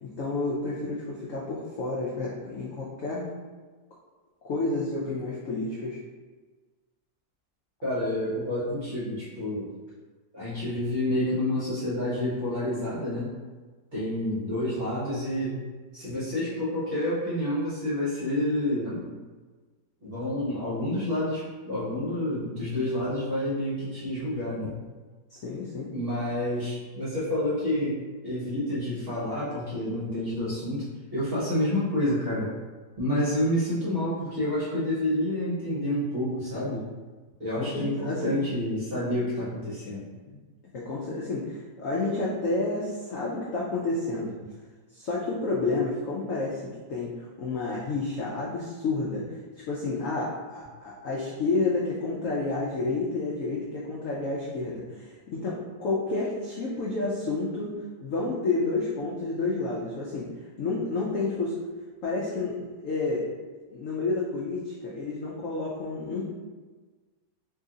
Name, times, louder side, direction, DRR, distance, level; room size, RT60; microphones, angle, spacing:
voice 1, 0.0-3.3 4.4-6.0 25.3-25.9 37.6-38.4 40.3-40.4 40.7-44.3 44.9-49.2 49.7-57.7 58.0-60.3 60.6-61.6 62.0-63.3 63.7-66.2, left 3 dB, 75° left, -5 dB, 0.7 m, -30 dB
voice 2, 7.8-9.7 10.3-13.3 13.9-15.6 15.9-19.0 20.0-24.7 25.9-30.9 31.1-32.5 33.0-36.9 37.4-40.0, left 1 dB, 40° right, -9 dB, 1.0 m, -29 dB
3.0 x 2.8 x 3.7 m, 1.4 s
omnidirectional pair, 2.0 m